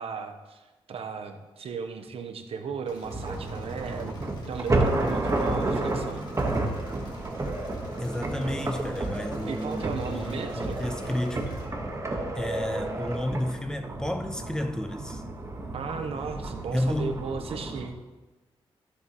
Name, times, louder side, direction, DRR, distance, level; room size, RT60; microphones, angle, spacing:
voice 1, 0.0-6.2 9.5-10.8 15.7-18.0, right 5 dB, 75° right, 1.0 m, -36 dB
Engine / Mechanisms, 2.9-11.6, left 2 dB, 50° left, 2.6 m, -49 dB
sound 1, 3.0-17.9, right 2 dB, 30° right, 1.4 m, -31 dB
voice 2, 8.0-11.5 12.3-15.2 16.7-17.2, left 1 dB, 5° left, 0.9 m, -31 dB
15.0 x 7.2 x 3.1 m
cardioid pair, 75°, 10 cm